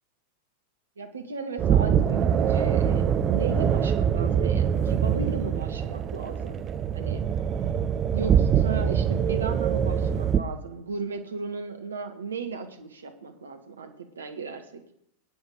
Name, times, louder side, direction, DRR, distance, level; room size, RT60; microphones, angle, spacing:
voice 1, 1.0-6.6 6.9-7.2 7.7-14.8, right 4 dB, 70° right, 6 dB, 1.7 m, -35 dB
sound 1, 1.6-10.4, right 8 dB, 30° right, 1.0 m, -24 dB
23.0 x 9.8 x 5.2 m, 0.77 s
figure-of-eight pair, 90°, 0 cm